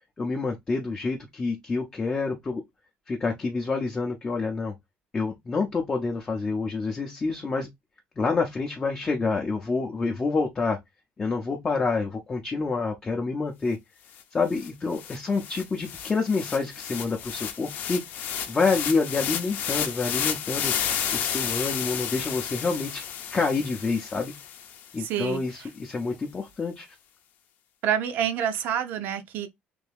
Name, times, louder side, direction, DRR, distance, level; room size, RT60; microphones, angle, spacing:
voice 1, 0.2-2.6 3.1-4.7 5.1-7.7 8.2-10.8 11.2-13.8 14.3-18.0 18.5-20.7 21.1-23.0 23.3-24.3 24.9-26.9, left 4 dB, 20° left, 0.6 m, -27 dB
sound 1, 14.2-14.3 14.5-24.9, left 8 dB, 60° left, 0.6 m, -32 dB
voice 2, 25.0-25.4 27.8-29.5, right 9 dB, 65° right, 0.6 m, -27 dB
3.4 x 2.6 x 3.3 m
cardioid pair, 160°, 4 cm